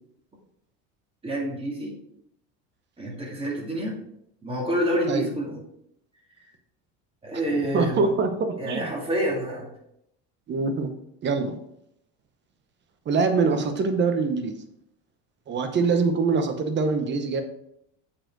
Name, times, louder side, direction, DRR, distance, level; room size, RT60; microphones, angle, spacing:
voice 1, 1.2-1.9 3.0-4.0 4.4-5.6 7.2-8.1 8.6-9.7, equal, 15° right, -2 dB, 2.3 m, -28 dB
voice 2, 7.7-8.9 10.5-10.9 11.2-11.6 13.1-14.6 15.5-17.4, right 4 dB, 30° right, 7 dB, 1.0 m, -24 dB
7.5 x 4.5 x 4.6 m, 0.77 s
cardioid pair, 135°, 34 cm